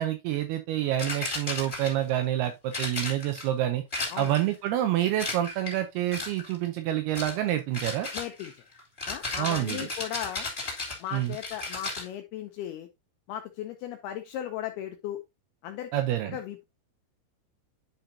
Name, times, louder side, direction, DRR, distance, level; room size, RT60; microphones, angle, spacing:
voice 1, 0.0-3.8 4.2-8.1 9.4-9.8 11.1-11.4 15.9-16.4, right 13 dB, 90° right, 2.2 m, -28 dB
sound 1, 1.0-2.1 2.7-3.5 3.9-4.5 5.2-5.8 6.1-6.5 7.1-7.4 7.7-12.1, left 3 dB, 20° left, 2.0 m, -35 dB
voice 2, 8.1-8.6 9.1-10.5 11.0-12.9 13.3-15.2 15.6-16.6, left 11 dB, 90° left, 2.2 m, -37 dB
10.5 x 5.3 x 2.7 m
omnidirectional pair, 5.5 m